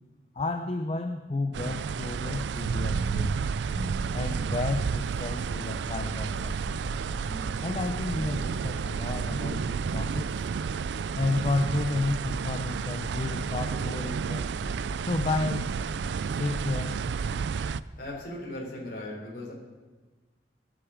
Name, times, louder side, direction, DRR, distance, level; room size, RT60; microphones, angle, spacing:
voice 1, 0.3-3.4 4.1-6.8 7.6-10.5 11.2-14.6 15.0-15.8 16.4-17.1, left 2 dB, 30° left, 7 dB, 0.5 m, -31 dB
sound 1, 1.5-17.8, right 6 dB, 80° right, 0.3 m, -31 dB
sound 2, 2.9-10.4, equal, 20° right, 0.9 m, -46 dB
sound 3, 5.7-17.8, equal, 75° left, 2.1 m, -44 dB
voice 2, 18.0-19.5, left 1 dB, 50° left, -2 dB, 3.6 m, -38 dB
17.5 x 7.7 x 5.0 m, 1.3 s
head